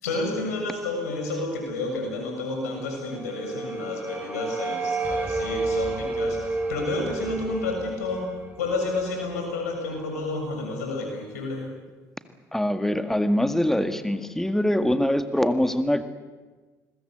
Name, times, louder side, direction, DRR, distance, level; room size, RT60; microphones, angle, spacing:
voice 1, 0.0-8.3 8.6-11.6, left 3 dB, 85° left, 3 dB, 6.8 m, -30 dB
sound 1, 2.8-9.8, right 3 dB, 20° right, 6.3 m, -31 dB
voice 2, 12.5-16.0, left 1 dB, 5° left, 9 dB, 1.9 m, -23 dB
27.0 x 21.5 x 8.0 m, 1.3 s
hypercardioid pair, 55°, 8 cm